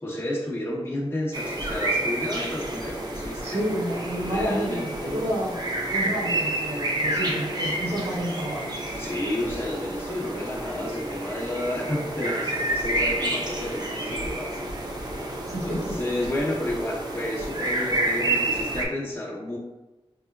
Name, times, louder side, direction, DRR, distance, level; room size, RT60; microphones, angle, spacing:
voice 1, 0.0-3.6 4.2-5.3 8.9-15.2 15.6-19.6, left 1 dB, 20° left, -5 dB, 1.0 m, -31 dB
sound 1, 1.3-18.8, right 1 dB, 40° right, 0.6 m, -29 dB
voice 2, 3.4-5.5 5.9-8.7 15.5-15.9, right 1 dB, 90° right, -5 dB, 1.2 m, -30 dB
5.4 x 2.1 x 2.4 m, 1.1 s
wide cardioid pair, 70°, 11 cm